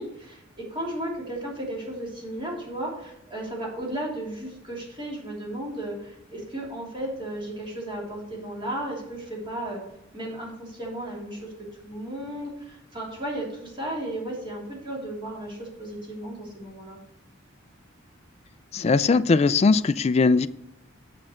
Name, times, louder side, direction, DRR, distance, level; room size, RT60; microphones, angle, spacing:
voice 1, 0.0-9.8 10.1-11.5 11.8-17.0, right 1 dB, 25° right, 2.9 m, -34 dB
voice 2, 18.7-20.5, left 4 dB, 30° left, 0.3 m, -20 dB
7.7 x 7.5 x 4.4 m
head